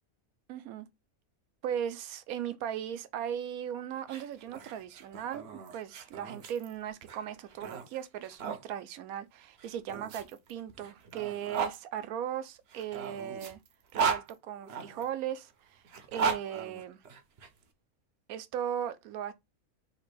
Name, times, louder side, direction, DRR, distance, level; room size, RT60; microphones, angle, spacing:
voice 1, 0.5-0.9 1.6-5.4 5.7-13.6 13.9-17.0 18.3-19.3, right 9 dB, 80° right, 1.1 m, -37 dB
sound 1, 4.0-8.6 9.6-11.8 12.7-15.0 15.8-17.5, right 6 dB, 55° right, 0.8 m, -36 dB
3.3 x 2.8 x 4.5 m
omnidirectional pair, 1.5 m